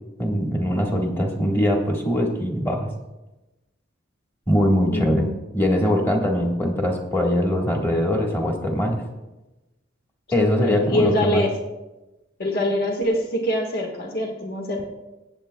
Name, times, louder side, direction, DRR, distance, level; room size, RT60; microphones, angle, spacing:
voice 1, 0.2-2.9 4.5-5.3 5.5-9.0 10.3-11.4, equal, 10° left, 0 dB, 1.3 m, -22 dB
voice 2, 4.9-5.3 10.4-11.5 12.4-14.8, left 1 dB, 50° left, 2 dB, 1.4 m, -24 dB
22.0 x 7.9 x 2.2 m, 1.1 s
head